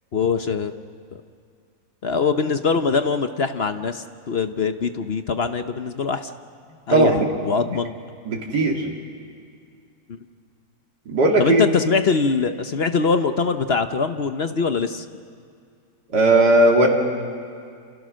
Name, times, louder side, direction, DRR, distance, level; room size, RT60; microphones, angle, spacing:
voice 1, 0.1-0.7 1.1-1.2 2.0-6.3 6.9-7.1 7.4-7.9 10.1-10.2 11.4-15.0, left 5 dB, 50° left, 9 dB, 0.9 m, -23 dB
voice 2, 6.9-7.3 8.3-8.8 11.1-11.6 16.1-16.9, right 2 dB, 80° right, -1 dB, 3.1 m, -17 dB
28.5 x 28.0 x 6.4 m, 2.3 s
omnidirectional pair, 1.8 m